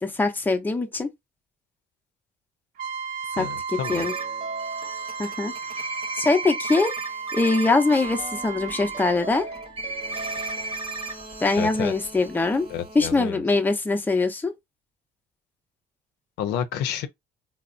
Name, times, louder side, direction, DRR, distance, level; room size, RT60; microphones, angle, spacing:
voice 1, 0.0-1.1 3.4-4.1 5.2-5.5 6.1-6.9 7.3-9.5 11.4-12.7 12.9-14.5, left 3 dB, 10° left, 0.6 m, -23 dB
Trumpet, 2.8-9.2, right 6 dB, 55° right, 0.6 m, -34 dB
voice 2, 3.3-4.1 11.6-11.9 12.7-13.4 16.4-17.1, left 9 dB, 85° left, 0.6 m, -30 dB
sound 1, 3.8-13.2, right 3 dB, 35° right, 0.9 m, -35 dB
4.0 x 2.0 x 2.4 m
cardioid pair, 110°, 17 cm